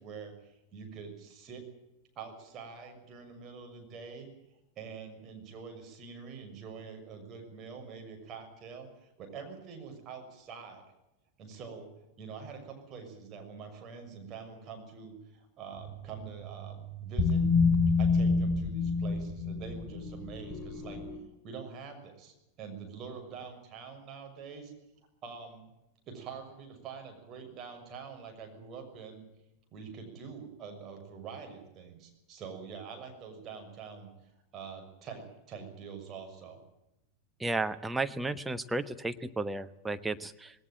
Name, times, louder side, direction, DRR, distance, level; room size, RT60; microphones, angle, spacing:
voice 1, 0.0-1.6 2.1-4.3 4.8-10.8 11.4-11.9 12.2-17.4 18.0-21.0 21.4-24.7 25.2-25.7 26.1-29.2 29.7-34.1 34.5-36.6, right 6 dB, 30° right, 3 dB, 6.6 m, -45 dB
sound 1, 15.7-21.2, left 4 dB, 10° left, 7.0 m, -29 dB
voice 2, 37.4-40.5, right 2 dB, 10° right, 9 dB, 1.0 m, -33 dB
19.5 x 18.5 x 9.1 m, 0.91 s
figure-of-eight pair, 90°, 0 cm